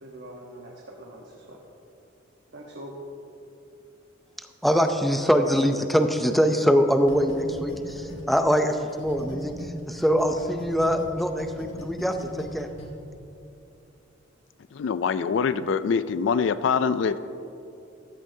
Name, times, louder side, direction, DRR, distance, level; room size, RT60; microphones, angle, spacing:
voice 1, 0.0-1.6 2.5-2.9, right 1 dB, 60° right, -2 dB, 1.1 m, -43 dB
voice 2, 4.6-12.7, equal, ahead, 6 dB, 0.5 m, -23 dB
sound 1, 7.1-9.7 10.0-12.8, equal, 90° left, 2.7 m, -39 dB
voice 3, 14.7-17.2, left 6 dB, 70° left, 14 dB, 0.3 m, -24 dB
14.5 x 12.5 x 2.7 m, 2.7 s
head